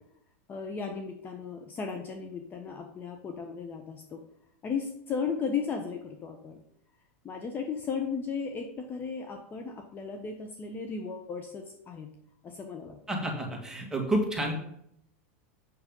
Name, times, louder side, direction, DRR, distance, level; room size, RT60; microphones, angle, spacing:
voice 1, 0.5-4.2 4.6-6.6 7.2-12.1 12.4-13.0, left 5 dB, 25° left, 4 dB, 1.1 m, -35 dB
voice 2, 13.1-14.5, right 1 dB, 5° right, 0 dB, 2.3 m, -29 dB
7.5 x 6.7 x 5.4 m, 0.71 s
supercardioid pair, 130°, 8 cm